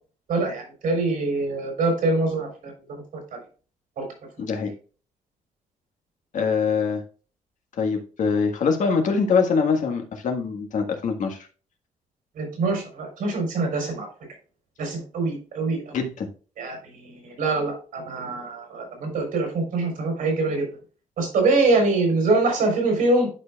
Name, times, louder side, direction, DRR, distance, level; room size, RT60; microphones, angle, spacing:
voice 1, 0.3-3.0 4.0-4.1 12.4-14.1 14.8-16.0 16.6-20.6 21.2-23.3, right 3 dB, 85° right, 2 dB, 3.9 m, -24 dB
voice 2, 4.4-4.7 6.3-7.0 7.8-11.5 15.9-16.3, left 5 dB, 70° left, 4 dB, 1.6 m, -23 dB
11.5 x 5.1 x 2.3 m, 0.37 s
cardioid pair, 135°, 14 cm